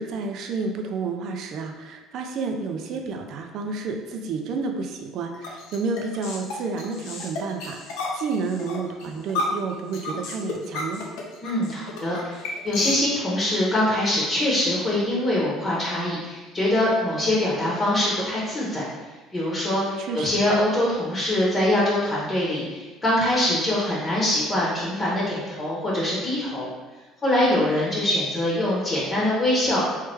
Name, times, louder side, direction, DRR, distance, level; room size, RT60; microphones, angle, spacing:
voice 1, 0.0-11.0 20.0-20.4, right 4 dB, 60° right, 4 dB, 0.5 m, -30 dB
sound 1, 5.3-12.9, left 3 dB, 80° left, 0.7 m, -32 dB
voice 2, 11.4-18.8 19.3-26.7 27.2-29.8, left 1 dB, 25° left, -6 dB, 1.0 m, -23 dB
3.3 x 3.2 x 3.3 m, 1.2 s
cardioid pair, 115°, 0 cm